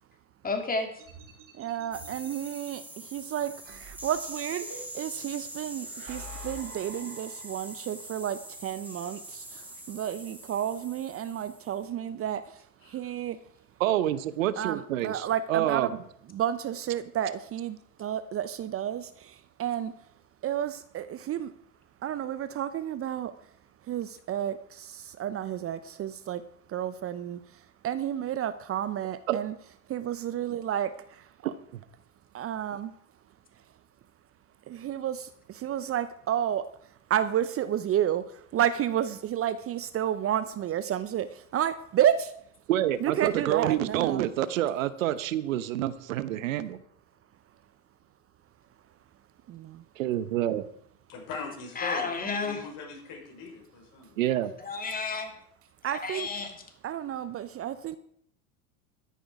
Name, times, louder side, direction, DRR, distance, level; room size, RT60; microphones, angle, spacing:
voice 1, 0.4-0.9 51.8-52.6 54.6-55.3 55.8-56.6, left 4 dB, 20° left, 5 dB, 2.9 m, -31 dB
sound 1, 1.0-2.7 3.6-5.2 5.8-8.0, right 2 dB, 55° right, 4.2 m, -47 dB
voice 2, 1.6-4.6 5.0-9.6 9.9-12.6 12.9-13.4 14.6-16.0 16.3-19.9 20.4-21.5 22.0-23.3 23.9-26.4 26.7-27.4 27.8-29.5 29.9-31.5 32.3-32.9 34.7-36.6 37.1-38.2 38.5-42.3 43.0-44.2 49.5-49.8 55.8-56.3 56.8-58.0, right 10 dB, 35° right, 13 dB, 0.8 m, -31 dB
sound 2, 1.9-11.8, right 1 dB, 5° right, 3.4 m, -43 dB
voice 3, 13.8-16.0 29.3-29.4 31.7-31.8 42.7-46.8 50.0-50.6 54.2-54.5, right 12 dB, 70° right, 14 dB, 1.0 m, -28 dB
voice 4, 51.1-54.1, left 4 dB, 55° left, 1 dB, 5.6 m, -40 dB
13.5 x 10.5 x 4.9 m, 0.67 s
hypercardioid pair, 80°, 41 cm